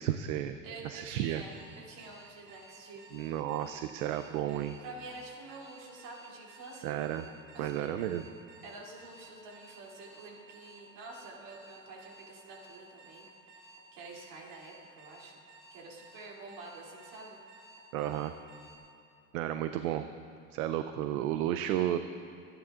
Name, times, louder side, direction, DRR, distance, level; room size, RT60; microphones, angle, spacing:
voice 1, 0.0-0.6 0.8-1.4 3.1-4.8 6.8-7.2 7.6-8.2 17.9-18.3 19.3-20.1 20.5-22.0, right 12 dB, 80° right, 9 dB, 0.6 m, -32 dB
voice 2, 0.6-3.4 4.8-7.0 7.5-7.9 8.6-15.3 15.7-17.4, right 3 dB, 65° right, -3 dB, 3.0 m, -48 dB
Alarm, 1.5-18.8, right 2 dB, 45° right, 2.3 m, -55 dB
25.5 x 10.0 x 2.5 m, 2.4 s
supercardioid pair, 105°, 41 cm